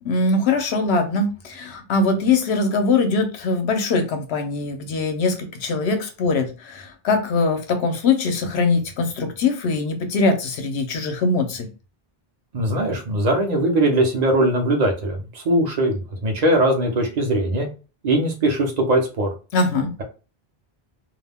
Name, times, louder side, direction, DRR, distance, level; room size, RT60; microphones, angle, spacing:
voice 1, 0.0-11.7 19.5-19.9, left 3 dB, 90° left, 6 dB, 0.9 m, -22 dB
voice 2, 12.5-17.7 18.0-19.3, right 1 dB, 45° right, 3 dB, 0.7 m, -20 dB
2.4 x 2.2 x 3.3 m, 0.33 s
omnidirectional pair, 1.0 m